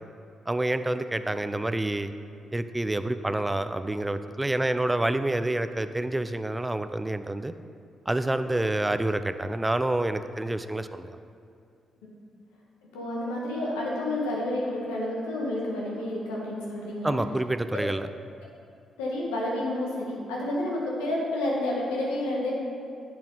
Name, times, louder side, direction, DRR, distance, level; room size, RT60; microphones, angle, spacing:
voice 1, 0.5-2.1 2.5-7.5 8.1-11.2 17.0-18.1, right 1 dB, 15° right, 10 dB, 0.4 m, -28 dB
voice 2, 12.9-17.2 19.0-22.5, left 1 dB, 85° left, -4 dB, 1.6 m, -30 dB
10.5 x 6.0 x 3.8 m, 2.4 s
hypercardioid pair, 45°, 0 cm